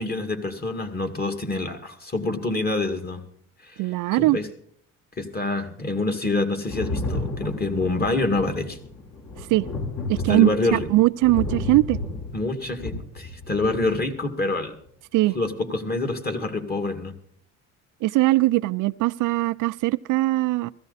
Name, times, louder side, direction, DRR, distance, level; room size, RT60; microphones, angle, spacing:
voice 1, 0.0-3.2 3.6-3.8 4.1-4.5 5.2-8.8 10.1-10.9 12.3-14.7 15.3-17.2, left 2 dB, 30° left, 2.2 m, -26 dB
voice 2, 3.8-4.4 9.5-9.7 10.1-12.0 15.1-15.4 18.0-20.7, right 19 dB, 70° right, 0.5 m, -21 dB
Thunder, 6.7-14.0 15.2-15.3, left 2 dB, 55° left, 4.1 m, -32 dB
16.0 x 14.5 x 4.1 m
supercardioid pair, 80°, 33 cm